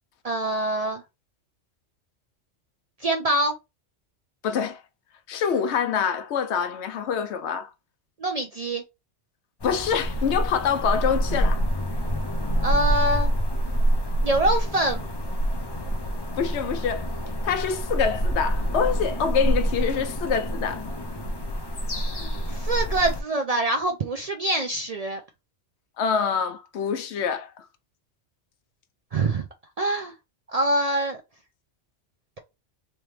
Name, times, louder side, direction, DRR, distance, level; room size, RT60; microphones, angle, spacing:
voice 1, 0.2-1.0 3.0-3.5 8.2-8.8 12.6-13.3 14.2-15.1 22.1-25.2 29.1-29.5 29.8-30.1 30.5-31.2, right 2 dB, 60° right, 0.4 m, -25 dB
voice 2, 4.4-4.8 5.3-7.7 9.6-11.6 16.4-17.1 17.4-20.8 26.0-27.6, left 7 dB, 70° left, 0.9 m, -25 dB
sound 1, 9.6-23.2, equal, 40° left, 0.3 m, -26 dB
3.5 x 2.9 x 3.1 m
omnidirectional pair, 1.2 m